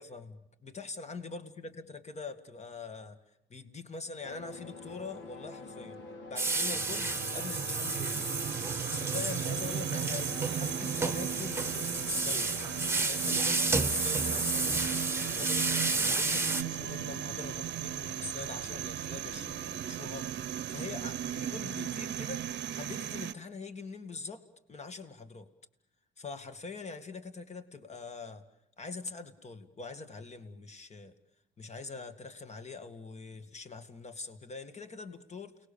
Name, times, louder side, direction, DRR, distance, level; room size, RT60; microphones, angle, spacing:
voice 1, 0.0-3.2 3.5-6.0 6.3-8.3 8.9-12.6 13.1-24.4 24.7-25.5 26.2-28.4 28.8-31.1 31.6-35.6, left 4 dB, 35° left, 9 dB, 2.2 m, -43 dB
sound 1, 4.2-17.6, left 3 dB, 70° left, 3.6 m, -47 dB
sound 2, 6.4-16.6, right 3 dB, 10° right, 1.4 m, -31 dB
sound 3, 6.7-23.3, right 10 dB, 60° right, 0.9 m, -37 dB
29.5 x 19.5 x 7.1 m, 0.80 s
cardioid pair, 90°, 20 cm